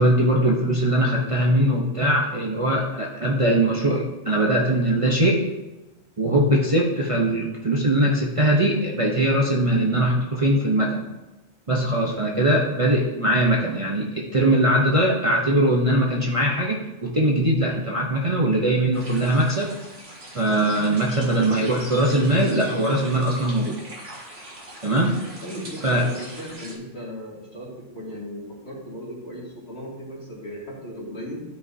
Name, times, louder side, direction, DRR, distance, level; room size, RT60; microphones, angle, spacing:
voice 1, 0.0-5.4 6.2-11.0 11.7-19.7 20.3-23.8 24.8-25.1 25.8-26.0, right 1 dB, 30° right, -3 dB, 0.8 m, -21 dB
sound 1, 18.9-26.7, right 1 dB, 55° right, 2.2 m, -41 dB
voice 2, 25.4-31.4, equal, 55° left, -5 dB, 2.6 m, -37 dB
13.0 x 5.3 x 2.7 m, 1.1 s
omnidirectional pair, 1.3 m